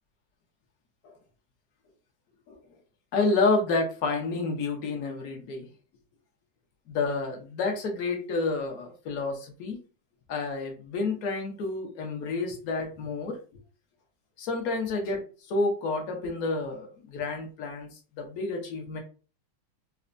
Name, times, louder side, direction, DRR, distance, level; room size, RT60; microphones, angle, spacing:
voice 1, 3.1-5.7 6.9-9.8 10.3-13.4 14.4-15.2 15.5-17.9 18.2-19.0, left 3 dB, 60° left, 3 dB, 1.0 m, -29 dB
4.2 x 2.1 x 2.5 m, 0.36 s
omnidirectional pair, 2.2 m